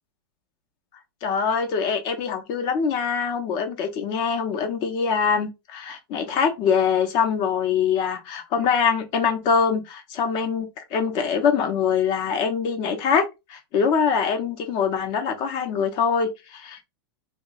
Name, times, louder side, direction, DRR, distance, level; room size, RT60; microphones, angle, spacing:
voice 1, 1.2-13.2 13.5-16.9, left 6 dB, 35° left, 0.7 m, -23 dB
3.0 x 2.2 x 3.9 m
supercardioid pair, 155°, 13 cm